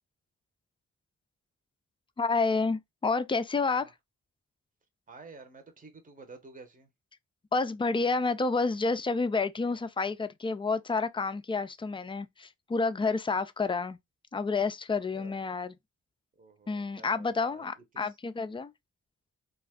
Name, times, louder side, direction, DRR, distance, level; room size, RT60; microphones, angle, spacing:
voice 1, 2.2-3.9 7.5-14.0 14.3-15.7 16.7-18.7, left 4 dB, 15° left, 0.3 m, -29 dB
voice 2, 5.1-6.9 15.1-15.4 16.4-18.1, right 3 dB, 25° right, 0.8 m, -51 dB
2.3 x 2.3 x 3.4 m
cardioid pair, 50°, 34 cm